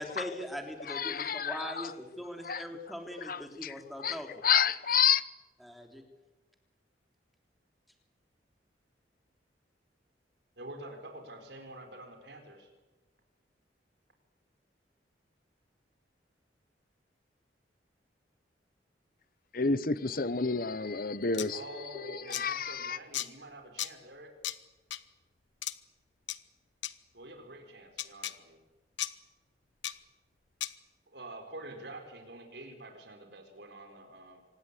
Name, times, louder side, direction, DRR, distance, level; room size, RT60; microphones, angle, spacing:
voice 1, 0.0-4.3 5.6-6.0, equal, ahead, 3.3 m, -41 dB
voice 2, 0.9-1.9 2.4-2.6 3.2-5.2 19.5-21.6 22.1-23.0, left 6 dB, 50° left, 1.0 m, -30 dB
voice 3, 10.6-12.7 21.5-24.3 27.1-28.6 31.1-34.4, right 1 dB, 70° right, 4.6 m, -47 dB
sound 1, 21.3-21.5 22.3-22.4 23.1-23.3 23.8-23.9 24.4-24.6 24.9-25.0 25.6-25.7 26.3-26.4 26.8-26.9 28.0-28.3 29.0-29.1 29.8-29.9 30.6-30.7, left 13 dB, 85° left, 1.0 m, -34 dB
25.5 x 19.5 x 8.5 m
head